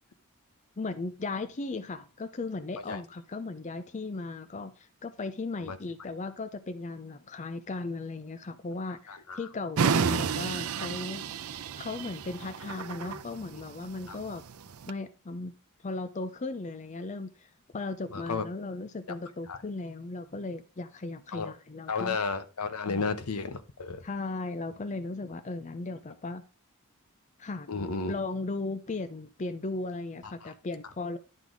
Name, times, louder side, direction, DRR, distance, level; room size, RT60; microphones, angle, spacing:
voice 1, 0.8-11.3 11.8-14.4 14.9-15.6 15.8-22.2 24.0-26.4 27.4-31.2, left 3 dB, 35° left, 0.5 m, -37 dB
voice 2, 9.1-9.5 13.5-13.6 14.1-14.2 18.1-18.4 19.5-19.6 21.3-21.5 21.9-24.0 27.7-28.1 30.4-30.5, left 4 dB, 85° left, 0.9 m, -33 dB
sound 1, 9.8-14.9, right 6 dB, 80° right, 0.5 m, -31 dB
11.0 x 4.0 x 4.7 m
head